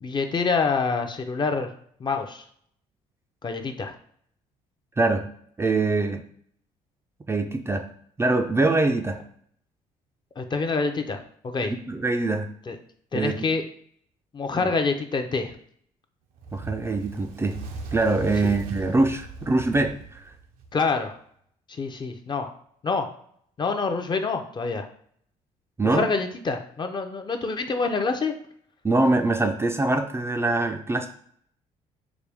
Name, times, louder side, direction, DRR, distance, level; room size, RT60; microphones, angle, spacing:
voice 1, 0.0-1.7 2.0-2.4 3.4-3.9 10.4-11.7 12.7-12.8 13.1-13.6 14.3-15.5 18.4-18.5 20.7-21.1 21.7-22.5 22.8-23.1 23.6-24.9 25.8-28.3, left 4 dB, 30° left, 5 dB, 0.6 m, -26 dB
voice 2, 5.0-5.3 5.6-6.2 7.3-7.9 8.2-9.2 11.6-12.5 13.1-13.3 14.5-14.7 16.5-17.6 17.9-20.2 25.8-26.1 28.8-31.1, right 2 dB, 15° right, 4 dB, 0.4 m, -23 dB
Fire, 16.4-20.9, right 3 dB, 80° right, 0.6 m, -38 dB
4.9 x 2.2 x 3.4 m, 0.63 s
cardioid pair, 90°, 15 cm